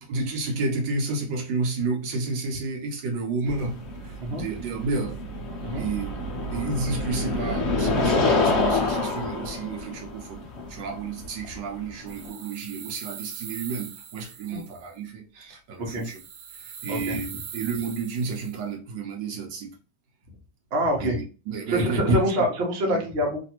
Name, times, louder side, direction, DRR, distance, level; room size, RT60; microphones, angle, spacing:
voice 1, 0.0-5.2 5.8-16.2 16.5-19.8 21.0-22.5 22.9-23.0, right 4 dB, 70° right, 1.3 m, -31 dB
sound 1, 3.5-12.3, left 3 dB, 80° left, 0.6 m, -27 dB
sound 2, 12.1-14.9 15.9-18.6, right 8 dB, 90° right, 0.8 m, -41 dB
voice 2, 20.7-21.2 21.7-23.4, equal, 50° right, 0.8 m, -25 dB
3.2 x 2.5 x 2.9 m
omnidirectional pair, 2.1 m